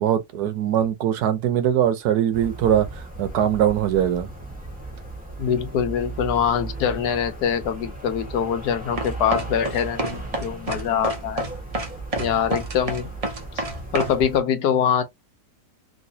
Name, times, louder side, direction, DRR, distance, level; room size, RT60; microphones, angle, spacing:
voice 1, 0.0-2.9 3.2-4.3, right 10 dB, 75° right, 1.2 m, -21 dB
sound 1, 2.3-14.4, right 2 dB, 5° right, 1.1 m, -36 dB
voice 2, 5.4-11.4 12.2-13.1 13.6-13.7 13.9-15.0, left 8 dB, 75° left, 1.2 m, -24 dB
sound 2, 9.0-14.2, right 2 dB, 40° right, 0.5 m, -28 dB
3.1 x 3.1 x 2.7 m
omnidirectional pair, 1.8 m